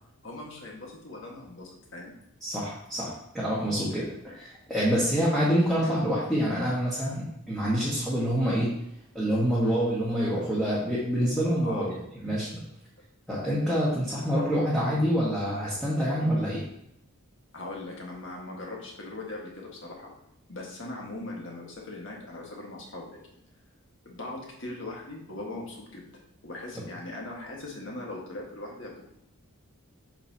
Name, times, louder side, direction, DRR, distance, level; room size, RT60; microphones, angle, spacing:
voice 1, 0.2-2.2 11.6-11.9 17.5-20.1 20.5-23.2 24.0-26.0 26.4-29.0, left 2 dB, 55° left, -1 dB, 1.7 m, -40 dB
voice 2, 2.4-8.7 9.1-11.9 12.2-12.6 13.3-16.6, equal, ahead, -9 dB, 1.4 m, -26 dB
7.9 x 5.7 x 2.8 m, 0.78 s
head